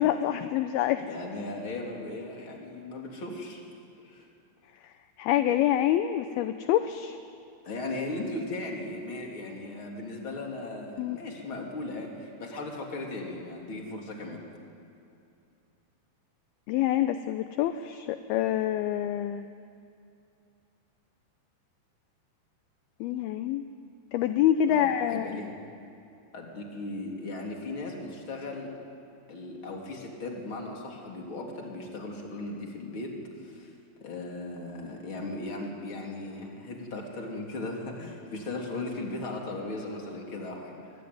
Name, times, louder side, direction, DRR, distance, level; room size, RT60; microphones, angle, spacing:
voice 1, 0.0-1.1 5.2-7.2 11.0-11.2 16.7-19.5 23.0-23.6 24.1-25.4, left 11 dB, 80° left, 9 dB, 2.4 m, -26 dB
voice 2, 1.1-3.6 4.0-4.3 7.6-14.4 24.7-25.5 26.3-28.8 29.3-33.1 33.4-33.7 34.0-40.9, left 2 dB, 30° left, 0 dB, 3.8 m, -37 dB
24.0 x 23.5 x 9.5 m, 2.6 s
omnidirectional pair, 4.9 m